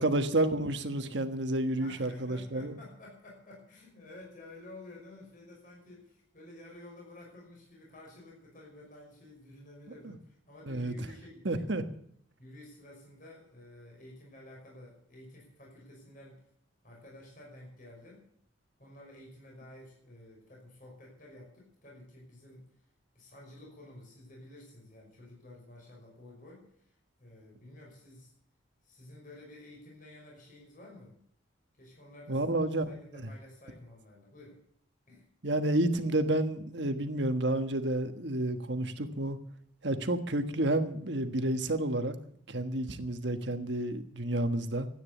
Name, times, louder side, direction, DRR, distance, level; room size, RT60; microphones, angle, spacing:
voice 1, 0.0-2.7 10.0-10.1 10.7-10.9 11.4-11.8 32.3-32.8 35.4-39.4 39.8-42.1 42.5-44.9, right 1 dB, 60° right, 8 dB, 1.4 m, -30 dB
voice 2, 1.7-11.7 12.4-16.4 16.8-18.2 18.8-22.7 23.1-28.3 28.8-31.2 31.7-32.5 32.9-34.6 35.1-35.3, left 1 dB, 45° left, -1 dB, 5.5 m, -52 dB
13.5 x 9.4 x 8.2 m, 0.68 s
head